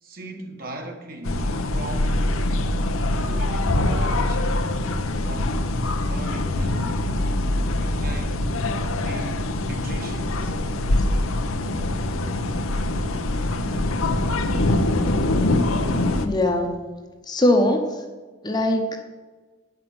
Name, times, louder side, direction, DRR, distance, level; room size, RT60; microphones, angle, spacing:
voice 1, 0.0-2.9 3.2-4.6 5.2-5.8 6.1-6.9 7.3-8.4 9.0-10.6, right 2 dB, 45° right, 1.2 m, -39 dB
sound 1, 1.2-16.3, left 1 dB, 90° left, 0.8 m, -23 dB
voice 2, 16.2-16.8 17.3-18.0 18.4-19.0, left 1 dB, 20° left, 0.8 m, -21 dB
8.9 x 6.0 x 7.7 m
head